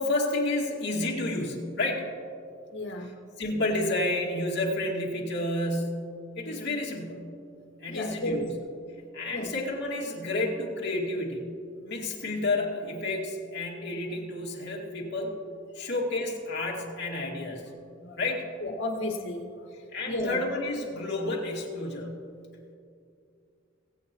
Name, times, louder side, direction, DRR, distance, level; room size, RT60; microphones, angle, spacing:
voice 1, 0.0-2.1 3.4-7.3 7.8-8.5 9.1-11.5 11.8-15.3 15.7-17.6 18.2-18.5 19.9-22.2, left 2 dB, 60° left, -3 dB, 2.3 m, -30 dB
voice 2, 2.7-3.1 7.9-8.4 9.3-9.5 15.8-15.9 18.0-18.2 18.6-19.5 20.0-20.4, left 1 dB, 75° left, 2 dB, 1.7 m, -32 dB
23.0 x 8.3 x 3.1 m, 2.4 s
head